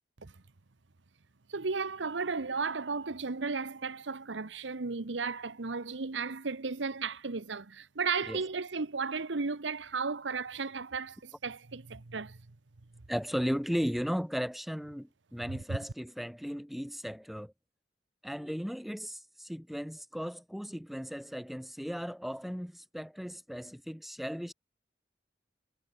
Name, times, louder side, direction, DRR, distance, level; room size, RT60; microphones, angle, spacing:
voice 1, 1.5-12.4 15.5-15.8, right 4 dB, 85° right, 1.0 m, -34 dB
voice 2, 13.1-17.5 18.2-24.5, equal, ahead, 1.8 m, -36 dB
head